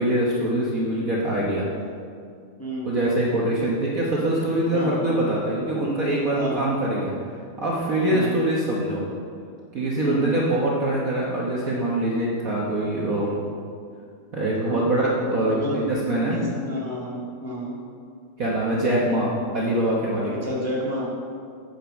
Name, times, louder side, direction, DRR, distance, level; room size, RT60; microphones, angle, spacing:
voice 1, 0.0-1.7 2.8-7.1 7.6-9.0 9.7-13.3 14.3-16.4 18.4-20.3, right 1 dB, 50° right, -4 dB, 1.3 m, -24 dB
voice 2, 2.6-3.0 4.7-5.0 6.3-6.7 8.1-8.3 10.0-10.4 14.7-14.9 15.4-15.8 16.3-17.7 20.3-21.1, equal, 10° left, -5 dB, 1.3 m, -30 dB
8.8 x 6.0 x 6.3 m, 2.2 s
omnidirectional pair, 2.4 m